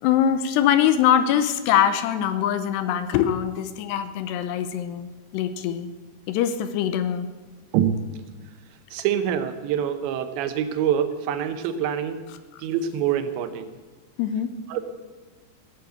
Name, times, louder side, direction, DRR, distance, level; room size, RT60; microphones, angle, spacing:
voice 1, 0.0-5.9 6.3-7.3 12.5-12.6 14.2-14.6, left 9 dB, 80° left, 10 dB, 2.8 m, -23 dB
voice 2, 7.7-8.2 8.9-12.2 12.6-13.7 14.7-14.8, right 9 dB, 90° right, 10 dB, 3.2 m, -25 dB
17.0 x 8.5 x 8.0 m, 1.2 s
omnidirectional pair, 5.0 m